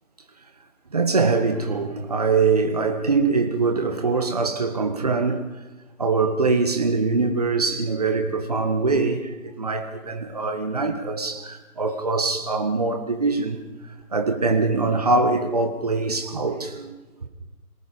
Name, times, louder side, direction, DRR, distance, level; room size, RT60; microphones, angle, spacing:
voice 1, 0.9-5.5 6.0-13.6 14.1-16.9, right 4 dB, 25° right, 1.7 m, -23 dB
26.5 x 18.5 x 5.4 m
figure-of-eight pair, 165°, 45 cm